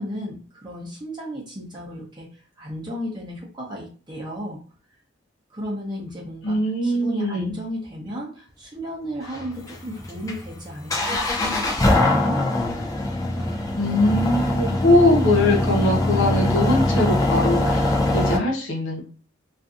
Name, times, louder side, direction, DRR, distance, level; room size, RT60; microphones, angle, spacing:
voice 1, 0.0-2.3 2.6-4.6 5.5-12.4, equal, 25° right, -3 dB, 0.7 m, -34 dB
voice 2, 6.4-7.5 13.8-19.0, left 1 dB, 80° left, -1 dB, 0.8 m, -21 dB
sound 1, 9.2-18.4, left 1 dB, 20° left, 0.3 m, -22 dB
2.6 x 2.4 x 2.4 m, 0.38 s
head